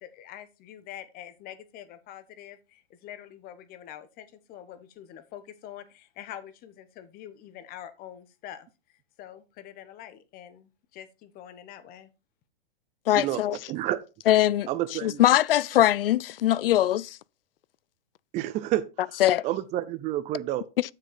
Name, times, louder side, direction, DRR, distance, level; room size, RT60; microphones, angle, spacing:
voice 1, 0.0-8.7 9.2-12.1, left 11 dB, 30° left, 1.1 m, -45 dB
voice 2, 13.1-13.6 14.3-14.7 15.0-17.2 19.2-19.4, left 13 dB, 75° left, 0.4 m, -21 dB
voice 3, 13.7-14.0 14.7-15.2 18.3-18.8 19.4-20.6, right 14 dB, 25° right, 0.6 m, -29 dB
7.5 x 6.4 x 4.1 m
hypercardioid pair, 125°, 29 cm